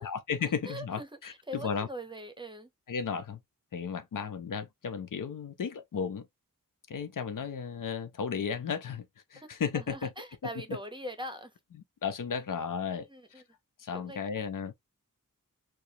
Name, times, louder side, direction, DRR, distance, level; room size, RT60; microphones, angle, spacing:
voice 1, 0.0-1.9 2.9-3.4 3.7-6.2 6.9-9.1 9.3-10.1 10.4-10.8 12.0-13.1 13.8-14.7, left 6 dB, 70° left, 0.6 m, -34 dB
voice 2, 0.6-2.7 9.4-9.5 9.7-11.5 13.1-13.4 13.9-14.2, equal, 15° right, 0.7 m, -42 dB
4.6 x 2.0 x 2.7 m
wide cardioid pair, 65°, 33 cm